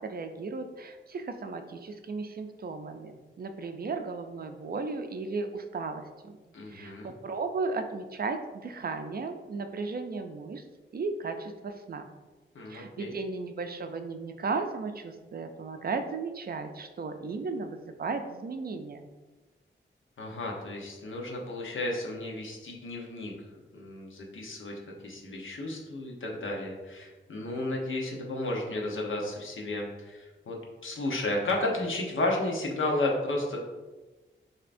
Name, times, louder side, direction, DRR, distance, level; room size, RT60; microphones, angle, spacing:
voice 1, 0.0-6.4 6.7-10.6 10.9-12.1 12.7-19.1, right 4 dB, 50° right, 6 dB, 0.4 m, -35 dB
voice 2, 6.5-7.1 12.5-13.1 20.2-23.3 23.7-30.6 30.8-33.6, left 2 dB, 80° left, -1 dB, 0.9 m, -33 dB
6.6 x 2.8 x 2.5 m, 1.2 s
wide cardioid pair, 150°, 20 cm